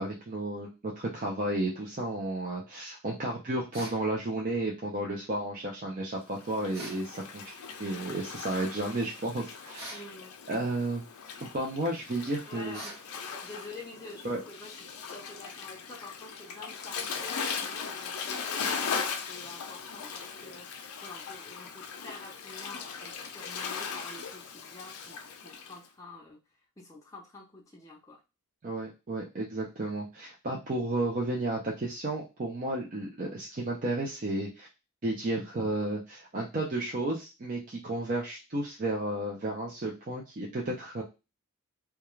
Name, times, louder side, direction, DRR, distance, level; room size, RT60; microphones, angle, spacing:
voice 1, 0.0-10.0 10.5-11.1 11.4-12.8 14.2-14.4 28.6-34.7 35.0-41.0, right 2 dB, 35° right, -2 dB, 0.5 m, -33 dB
sound 1, 3.7-4.0 6.7-7.1 9.8-10.1 12.7-13.1, right 1 dB, 15° right, 1.2 m, -43 dB
Waves surf, 6.3-25.8, left 6 dB, 85° left, 0.5 m, -39 dB
voice 2, 9.9-10.4 12.5-19.0 19.3-26.4 26.8-28.2, left 2 dB, 15° left, -2 dB, 0.5 m, -48 dB
2.3 x 2.2 x 3.0 m, 0.27 s
head